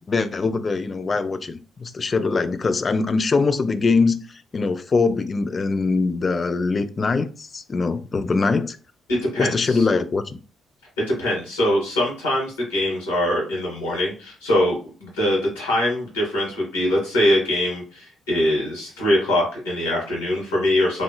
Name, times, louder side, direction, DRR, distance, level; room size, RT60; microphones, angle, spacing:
voice 1, 0.1-4.2 4.5-8.8 9.4-10.4, left 4 dB, 35° left, 11 dB, 0.3 m, -22 dB
voice 2, 9.1-9.8 11.1-21.0, left 1 dB, 75° left, -3 dB, 1.6 m, -23 dB
3.2 x 2.6 x 2.2 m, 0.35 s
figure-of-eight pair, 45°, 0 cm